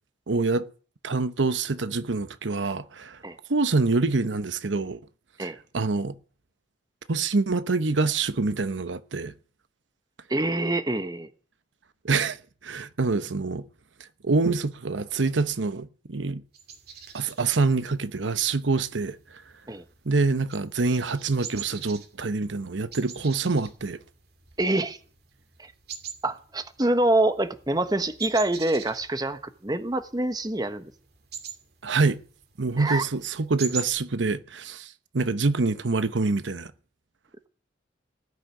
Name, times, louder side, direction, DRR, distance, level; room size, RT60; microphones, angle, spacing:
voice 1, 0.3-0.7 1.0-3.2 3.5-5.0 5.4-5.5 5.7-6.1 7.1-9.3 12.0-12.4 12.6-13.6 14.2-16.4 17.1-19.4 20.1-24.0 31.8-32.2 32.6-36.7, right 3 dB, 85° right, 0.9 m, -26 dB
voice 2, 10.3-11.3 19.7-19.8 24.6-25.0 25.6-25.7 26.2-30.9 32.8-33.0, right 2 dB, 20° right, 1.1 m, -26 dB
sound 1, 16.5-33.9, right 7 dB, 55° right, 2.8 m, -44 dB
18.5 x 6.5 x 10.0 m
head